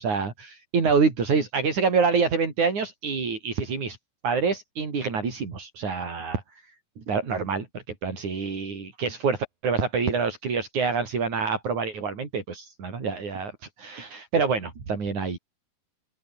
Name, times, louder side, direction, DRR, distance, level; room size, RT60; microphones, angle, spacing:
voice 1, 0.0-4.0 4.2-6.6 7.0-7.7 8.0-13.5 13.8-15.4, right 5 dB, 70° right, 6.2 m, -26 dB
open air
omnidirectional pair, 3.5 m